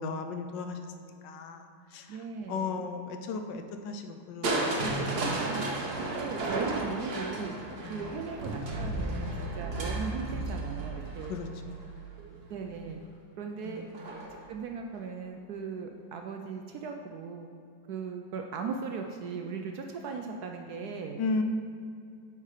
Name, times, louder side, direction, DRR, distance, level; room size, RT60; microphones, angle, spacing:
voice 1, 0.0-4.7 7.8-8.1 11.2-12.0 13.6-14.0 21.2-21.4, left 4 dB, 75° left, 7 dB, 1.3 m, -36 dB
voice 2, 2.1-2.7 5.4-7.6 7.9-11.4 12.5-13.0 13.4-13.8 14.5-17.5 17.9-21.2, right 5 dB, 70° right, 4 dB, 0.9 m, -38 dB
Crushing, 4.4-12.4 13.9-14.5 14.9-15.0, right 2 dB, 45° right, 0.9 m, -33 dB
8.3 x 5.5 x 4.9 m, 2.4 s
omnidirectional pair, 2.0 m